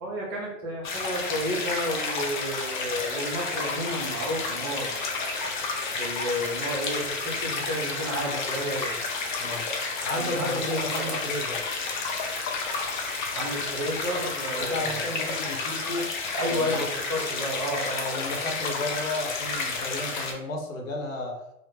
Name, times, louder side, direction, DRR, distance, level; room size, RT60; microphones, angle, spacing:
voice 1, 0.0-5.2 6.0-9.0 10.1-11.2 13.3-15.2 16.4-17.9, equal, 25° right, -3 dB, 0.5 m, -32 dB
sound 1, 0.8-20.3, left 4 dB, 40° left, 0.4 m, -31 dB
voice 2, 10.0-11.6 14.6-16.1 16.5-16.8 17.9-21.4, left 1 dB, 65° left, 0 dB, 0.8 m, -33 dB
2.1 x 2.1 x 3.1 m, 0.80 s
figure-of-eight pair, 110°, 42 cm